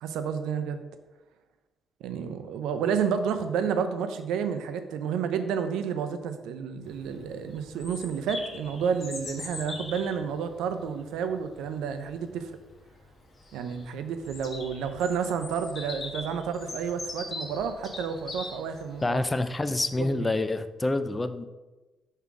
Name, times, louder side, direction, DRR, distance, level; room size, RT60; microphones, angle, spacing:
voice 1, 0.0-0.8 2.0-12.5 13.5-19.2 20.0-20.1, right 7 dB, 90° right, 9 dB, 0.5 m, -30 dB
Bird vocalization bird call bird song, 6.8-19.6, left 2 dB, 40° left, 1.3 m, -42 dB
voice 2, 19.0-21.5, left 2 dB, 20° left, 10 dB, 0.4 m, -27 dB
5.6 x 3.6 x 4.7 m, 1.1 s
cardioid pair, 90°, 0 cm